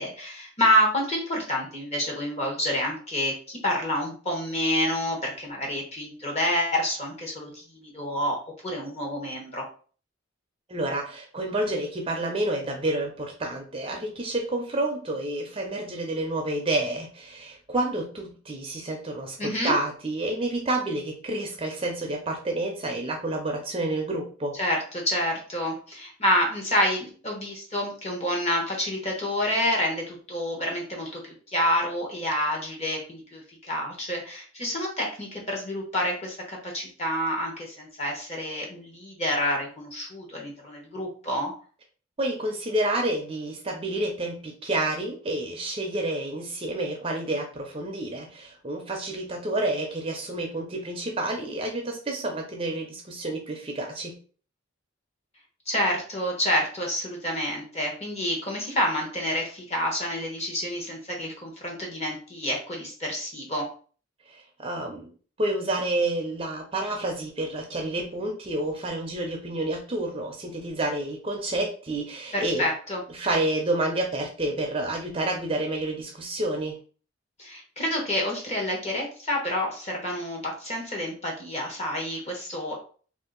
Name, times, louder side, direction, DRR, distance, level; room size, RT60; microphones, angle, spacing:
voice 1, 0.0-8.4 8.6-9.7 19.4-19.7 24.5-41.5 55.7-63.7 72.3-73.0 77.4-82.7, equal, 30° left, 0 dB, 1.0 m, -28 dB
voice 2, 10.7-24.6 42.2-54.2 64.3-65.1 65.4-72.6 73.1-76.8, right 1 dB, 25° right, 2 dB, 0.5 m, -29 dB
2.6 x 2.4 x 3.7 m, 0.41 s
head